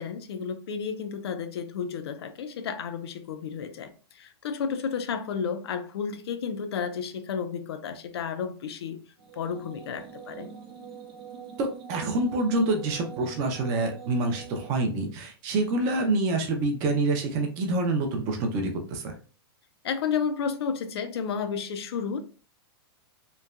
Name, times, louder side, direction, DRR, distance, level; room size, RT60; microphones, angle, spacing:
voice 1, 0.0-9.0 9.3-10.5 19.8-22.2, left 6 dB, 80° left, 0.5 m, -32 dB
sound 1, 9.2-14.7, right 7 dB, 70° right, 0.8 m, -44 dB
voice 2, 11.6-19.1, right 2 dB, 25° right, 0.4 m, -27 dB
3.1 x 2.1 x 2.3 m
supercardioid pair, 170°, 13 cm